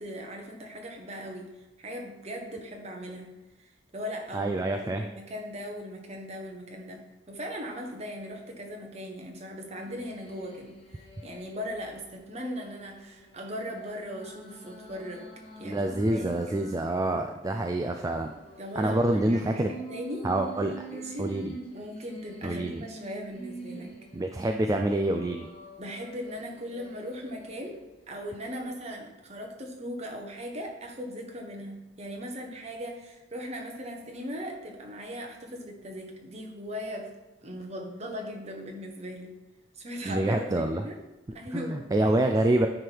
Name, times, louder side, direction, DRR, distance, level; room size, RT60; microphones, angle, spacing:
voice 1, 0.0-3.3 3.6-15.3 15.6-16.5 18.6-20.3 20.9-21.3 21.7-23.9 25.8-37.1 37.4-39.3 39.7-41.0 41.3-41.8, equal, 35° right, 2 dB, 1.1 m, -39 dB
voice 2, 4.3-5.0 15.6-18.3 18.8-19.7 20.2-20.7 21.2-21.5 22.4-22.8 24.1-25.5 40.1-40.8 41.5-42.7, right 1 dB, 20° right, 4 dB, 0.3 m, -26 dB
sound 1, 9.8-11.9 12.4-16.9 17.3-24.3 24.9-27.8 28.3-28.6, right 2 dB, 35° left, 1.1 m, -46 dB
9.5 x 3.4 x 4.6 m, 1.0 s
head